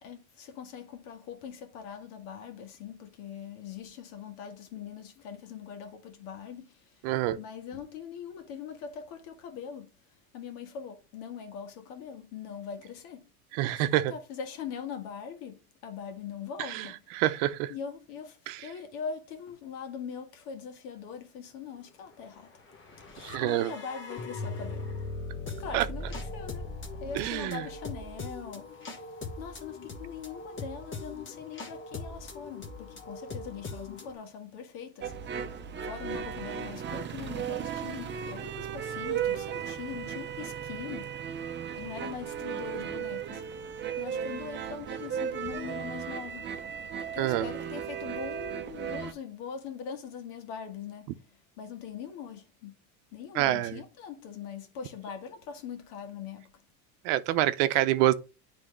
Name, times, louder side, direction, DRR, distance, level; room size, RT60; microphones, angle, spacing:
voice 1, 0.0-6.8 7.4-9.9 10.3-13.3 13.8-17.2 17.7-22.5 23.1-24.9 25.6-26.7 27.0-29.0 29.4-35.1 35.8-41.1 41.7-43.4 44.0-46.5 47.1-51.1 51.6-52.7 53.1-56.5, left 7 dB, 70° left, 1.7 m, -42 dB
voice 2, 7.0-7.4 13.5-14.1 16.6-17.7 18.5-18.7 23.2-23.7 25.7-25.9 27.1-27.6 47.2-47.5 53.3-53.8 57.0-58.1, right 14 dB, 70° right, 0.7 m, -27 dB
sound 1, 22.3-34.1, left 2 dB, 30° left, 1.3 m, -40 dB
sound 2, 35.0-49.1, right 8 dB, 25° right, 0.7 m, -36 dB
9.8 x 3.4 x 3.2 m
supercardioid pair, 110°, 42 cm